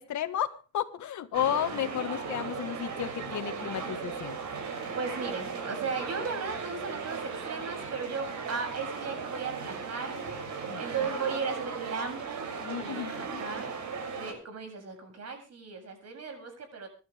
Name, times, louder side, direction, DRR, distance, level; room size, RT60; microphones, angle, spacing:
voice 1, 0.0-4.4 10.7-10.8 12.6-13.5, left 11 dB, 70° left, 8 dB, 1.7 m, -33 dB
sound 1, 1.3-14.3, right 5 dB, 70° right, 6.8 m, -37 dB
voice 2, 4.9-13.7 14.1-16.9, right 5 dB, 55° right, 5 dB, 7.8 m, -36 dB
25.5 x 12.0 x 3.6 m, 0.35 s
cardioid pair, 90°, 30 cm